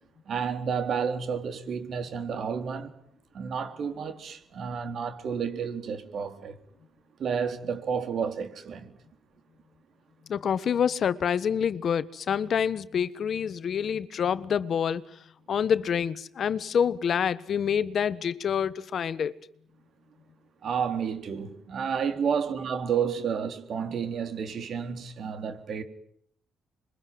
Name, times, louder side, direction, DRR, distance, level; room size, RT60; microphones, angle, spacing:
voice 1, 0.3-2.9 3.3-6.6 7.2-8.9 20.6-25.8, right 6 dB, 60° right, 3.9 m, -31 dB
voice 2, 10.3-15.0 15.5-19.3, left 7 dB, 55° left, 1.4 m, -27 dB
27.0 x 23.0 x 9.5 m
cardioid pair, 90°, 0 cm